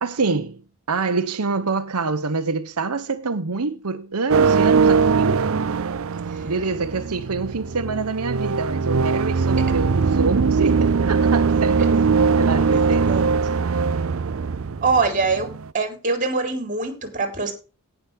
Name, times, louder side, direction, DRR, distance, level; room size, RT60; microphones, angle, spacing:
voice 1, 0.0-0.6 0.9-5.4 6.4-13.5, right 4 dB, 85° right, 1.0 m, -26 dB
sound 1, 4.3-15.7, right 5 dB, 65° right, 0.5 m, -21 dB
voice 2, 12.4-13.3 14.8-17.5, right 4 dB, 35° right, 3.8 m, -24 dB
18.0 x 6.1 x 3.5 m
head